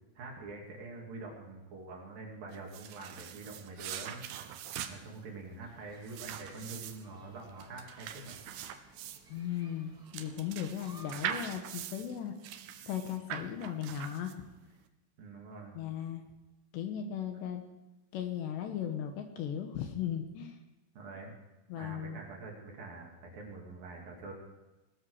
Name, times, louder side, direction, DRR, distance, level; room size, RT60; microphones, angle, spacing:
voice 1, 0.2-4.2 4.9-8.4 15.2-15.8 20.9-21.3 21.8-24.3, right 3 dB, 55° right, 0 dB, 3.8 m, -45 dB
sound 1, 2.5-14.6, right 10 dB, 85° right, 2.2 m, -43 dB
sound 2, 5.6-11.2, equal, 5° right, 0.9 m, -59 dB
voice 2, 9.3-12.4 12.9-14.3 15.7-16.2 16.7-17.6 18.1-20.6 21.7-22.2, left 9 dB, 75° left, 6 dB, 3.0 m, -37 dB
19.0 x 13.0 x 4.8 m, 1.1 s
omnidirectional pair, 5.6 m